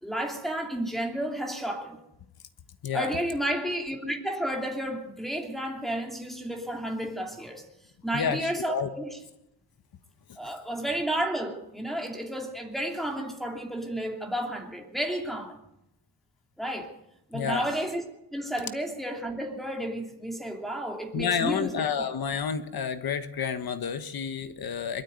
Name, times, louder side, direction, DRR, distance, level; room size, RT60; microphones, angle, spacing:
voice 1, 0.0-2.0 2.9-7.6 8.0-9.2 10.4-15.6 16.6-16.9 17.3-18.0 18.3-21.8, right 1 dB, ahead, 0 dB, 2.8 m, -32 dB
voice 2, 8.1-8.9 10.4-10.5 17.3-17.7 21.1-25.0, left 7 dB, 55° left, 10 dB, 1.4 m, -30 dB
22.5 x 13.0 x 9.5 m, 0.85 s
wide cardioid pair, 170°, 44 cm